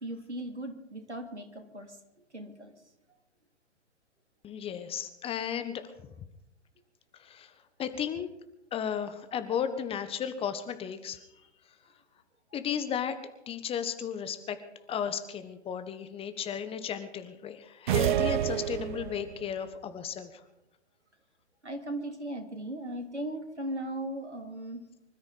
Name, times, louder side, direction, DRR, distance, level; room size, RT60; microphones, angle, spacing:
voice 1, 0.0-2.0 2.3-2.7 21.6-24.8, right 1 dB, 90° right, 5 dB, 2.8 m, -37 dB
voice 2, 4.4-5.9 7.2-7.5 7.8-8.3 8.7-11.2 12.5-13.2 13.5-14.6 14.9-20.4, left 8 dB, 15° left, 10 dB, 1.2 m, -34 dB
sound 1, 17.9-19.4, right 12 dB, 45° right, 0.5 m, -28 dB
25.5 x 13.5 x 4.1 m, 0.89 s
figure-of-eight pair, 115°, 33 cm